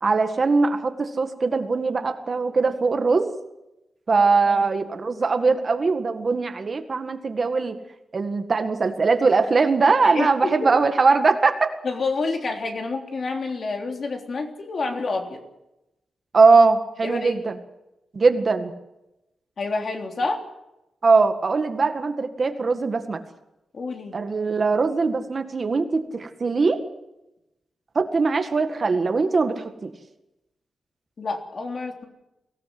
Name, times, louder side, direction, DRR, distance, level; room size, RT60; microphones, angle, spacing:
voice 1, 0.0-3.3 4.1-7.8 8.1-11.7 16.3-17.5 18.1-18.7 21.0-23.2 24.1-26.8 28.0-29.9, right 4 dB, 40° right, 7 dB, 1.9 m, -21 dB
voice 2, 10.0-10.7 11.8-15.4 17.0-17.4 19.6-20.4 23.7-24.2 31.2-32.1, left 3 dB, 45° left, 3 dB, 3.4 m, -28 dB
23.5 x 17.0 x 7.8 m, 0.91 s
wide cardioid pair, 160°, 0 cm